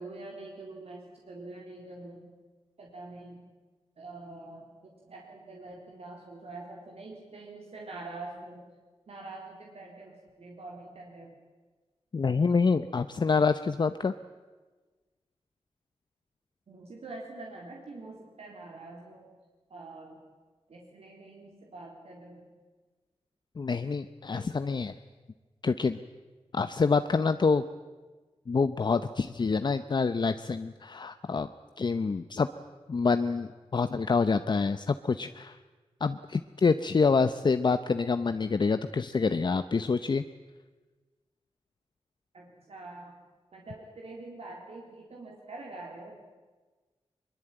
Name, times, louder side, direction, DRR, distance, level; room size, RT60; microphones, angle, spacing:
voice 1, 0.0-2.2 2.8-3.5 4.0-8.7 9.1-11.4 16.7-19.3 19.7-20.3 20.7-22.5 24.3-24.6 42.3-43.2 43.5-46.2, right 2 dB, 70° right, -1 dB, 3.9 m, -45 dB
voice 2, 12.1-14.1 23.6-24.9 25.6-26.0 26.5-27.6 28.5-31.5 31.8-32.5 32.9-35.6 36.0-40.2, left 4 dB, 45° left, 10 dB, 0.7 m, -26 dB
22.5 x 22.0 x 9.0 m, 1.3 s
wide cardioid pair, 120°, 11 cm